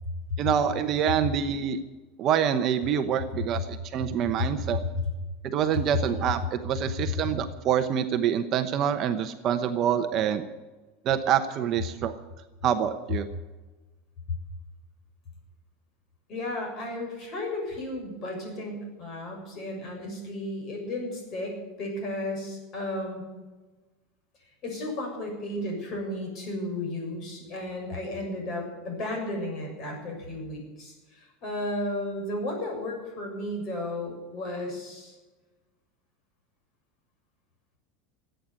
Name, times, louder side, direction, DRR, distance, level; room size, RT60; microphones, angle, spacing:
voice 1, 0.4-1.8 2.2-4.8 5.4-10.4 11.0-12.1 12.6-13.3, right 9 dB, 35° right, 8 dB, 0.9 m, -26 dB
voice 2, 16.3-23.2 24.6-35.2, left 1 dB, 35° left, 1 dB, 7.0 m, -33 dB
16.5 x 9.0 x 9.6 m, 1.2 s
supercardioid pair, 160°, 0 cm